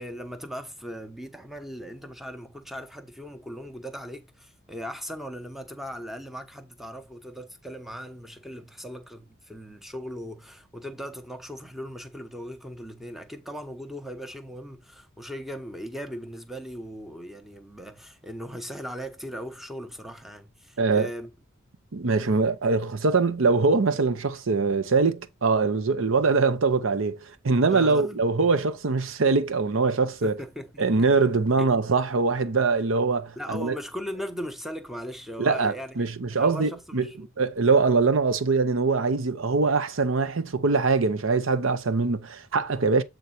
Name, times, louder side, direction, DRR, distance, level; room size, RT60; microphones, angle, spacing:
voice 1, 0.0-21.3 22.2-22.3 27.7-28.2 30.2-31.1 31.6-31.7 33.4-37.1, equal, ahead, 0.8 m, -38 dB
voice 2, 20.8-21.1 21.9-30.4 30.8-33.8 35.4-37.1 37.4-43.0, right 4 dB, 70° right, 0.7 m, -23 dB
8.1 x 3.9 x 4.3 m
head